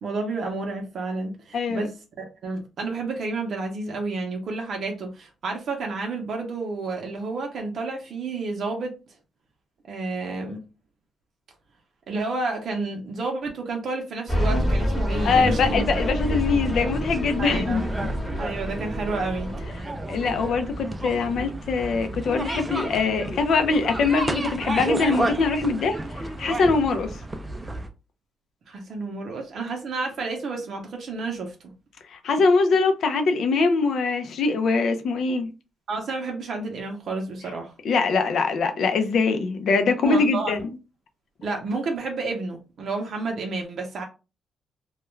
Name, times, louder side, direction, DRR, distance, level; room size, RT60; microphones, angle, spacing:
voice 1, 0.0-1.9 2.2-8.9 9.9-10.6 12.1-15.8 17.4-17.8 18.4-19.5 28.7-31.7 35.9-37.7 40.0-40.6 41.4-44.0, right 3 dB, 60° right, 0.6 m, -30 dB
voice 2, 1.5-1.9 15.2-18.1 20.1-27.1 32.1-35.5 37.8-40.7, left 4 dB, 65° left, 0.4 m, -23 dB
sound 1, 14.3-19.8, equal, ahead, 0.9 m, -27 dB
sound 2, 15.2-27.9, right 1 dB, 15° right, 0.4 m, -32 dB
2.3 x 2.2 x 3.0 m
cardioid pair, 120°, 0 cm